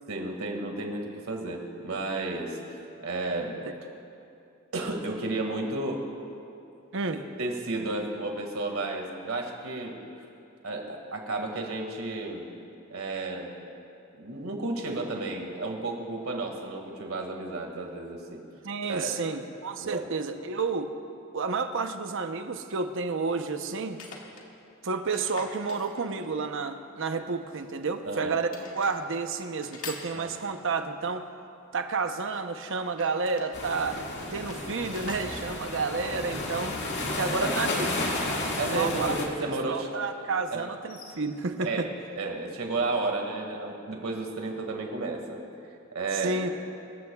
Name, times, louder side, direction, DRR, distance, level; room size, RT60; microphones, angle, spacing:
voice 1, 0.1-3.6 4.7-6.1 7.1-10.0 10.6-12.5 12.9-13.5 14.2-18.4 18.9-19.1 19.8-20.0 28.0-28.4 30.1-30.3 36.0-36.1 37.4-37.7 38.6-39.9 40.5-40.6 41.6-41.8 42.1-45.4 45.9-46.4, right 2 dB, 80° right, 2 dB, 2.0 m, -32 dB
voice 2, 18.6-20.9 21.3-24.0 24.8-28.5 28.8-31.3 31.7-34.0 34.3-36.8 37.1-37.9 38.6-39.2 39.7-41.9 46.1-46.7, right 4 dB, 65° right, 7 dB, 0.8 m, -30 dB
sound 1, 21.7-21.8 23.9-24.5 25.1-26.5 27.4-28.1 28.5-29.0 29.6-30.7 32.8-33.5 34.0-36.4 37.4-38.7 39.0-39.1 40.7-41.1, left 4 dB, 90° left, 1.9 m, -46 dB
sound 2, 33.5-39.3, left 2 dB, 55° left, 2.0 m, -32 dB
24.5 x 14.5 x 2.4 m, 2.7 s
head